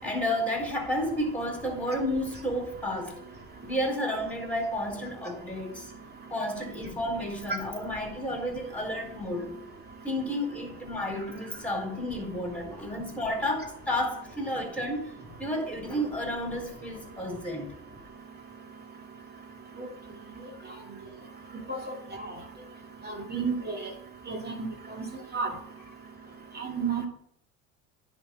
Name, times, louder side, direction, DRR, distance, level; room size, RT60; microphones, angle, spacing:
voice 1, 0.0-3.1 3.6-5.9 6.3-9.6 10.0-15.1 15.4-17.7 20.7-20.9, left 1 dB, 5° left, 4.2 m, -31 dB
voice 2, 23.0-23.9 24.3-24.7 25.3-25.5 26.6-27.1, right 5 dB, 25° right, 2.7 m, -31 dB
9.9 x 4.5 x 7.5 m
hypercardioid pair, 70°, 40 cm